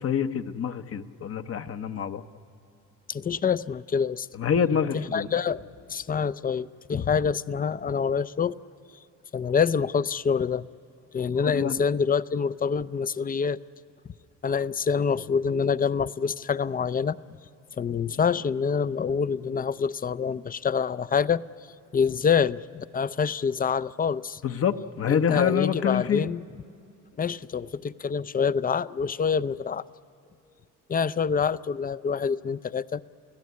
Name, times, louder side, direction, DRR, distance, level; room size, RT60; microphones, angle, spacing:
voice 1, 0.0-2.2 4.3-5.3 11.3-11.8 24.4-26.3, left 7 dB, 50° left, 9 dB, 1.0 m, -26 dB
voice 2, 3.1-4.3 4.9-5.6 5.9-8.6 9.3-10.7 11.1-13.6 14.4-17.2 17.8-21.4 21.9-24.4 25.1-26.4 27.2-29.8 30.9-33.0, left 6 dB, 30° left, 17 dB, 0.5 m, -26 dB
29.5 x 17.0 x 9.5 m, 2.7 s
cardioid pair, 90°, 30 cm